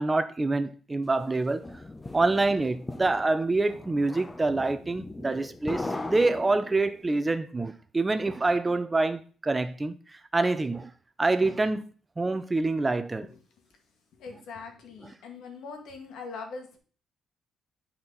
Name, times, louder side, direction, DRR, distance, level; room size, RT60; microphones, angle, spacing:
voice 1, 0.0-1.7 2.1-10.0 10.3-10.9 11.2-11.8 12.2-13.3, right 3 dB, 20° right, 0.6 m, -26 dB
sound 1, 1.2-7.1, left 2 dB, 20° left, 0.8 m, -39 dB
voice 2, 14.2-16.8, left 4 dB, 80° left, 1.9 m, -41 dB
10.5 x 4.3 x 4.0 m
cardioid pair, 90°, 0 cm